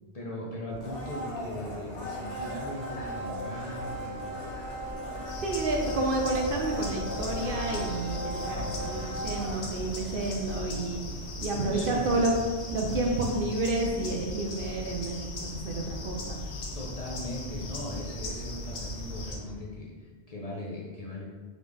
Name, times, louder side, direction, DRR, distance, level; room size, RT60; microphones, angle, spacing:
voice 1, 0.1-4.2 8.5-8.9 11.5-12.3 12.9-13.0 16.7-21.3, left 1 dB, 40° left, -4 dB, 0.6 m, -39 dB
sound 1, 0.7-19.5, equal, 80° right, 1.6 m, -44 dB
Domestic sounds home sounds, 0.8-10.7 11.0-11.1, equal, 60° left, 1.1 m, -38 dB
sound 2, 5.3-19.3, left 2 dB, 80° left, 1.0 m, -38 dB
voice 2, 5.4-11.0 11.4-12.3 12.7-16.4, right 2 dB, 60° right, 1 dB, 0.7 m, -30 dB
3.8 x 3.2 x 3.4 m, 1.5 s
omnidirectional pair, 1.1 m